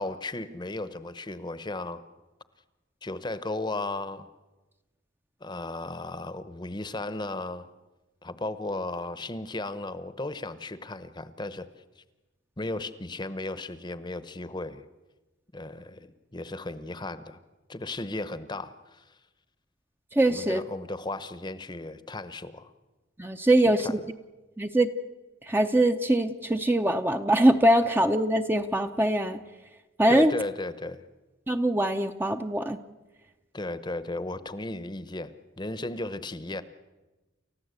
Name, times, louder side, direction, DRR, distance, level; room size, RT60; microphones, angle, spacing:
voice 1, 0.0-2.0 3.0-4.3 5.4-7.7 8.2-11.7 12.6-14.9 15.5-17.4 17.7-19.0 20.3-22.7 23.8-23.9 30.1-31.0 33.5-36.6, left 2 dB, 20° left, 13 dB, 0.9 m, -35 dB
voice 2, 20.1-20.6 23.2-24.0 24.6-24.9 25.4-29.4 30.0-30.3 31.5-32.8, right 1 dB, 10° right, 6 dB, 0.6 m, -23 dB
29.5 x 15.0 x 8.1 m, 1.1 s
head